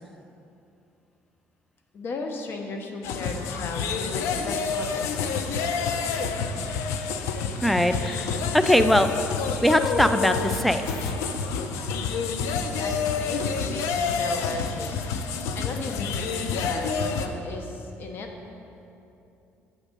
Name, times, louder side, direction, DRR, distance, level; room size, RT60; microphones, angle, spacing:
voice 1, 1.9-6.1 12.7-18.3, left 3 dB, 50° left, 3 dB, 0.9 m, -36 dB
sound 1, 3.0-17.3, left 5 dB, 85° left, 0.5 m, -28 dB
voice 2, 7.6-8.3 8.5-9.1 9.6-11.1, equal, ahead, 9 dB, 0.3 m, -21 dB
8.2 x 3.6 x 6.6 m, 2.8 s
cardioid pair, 110°, 5 cm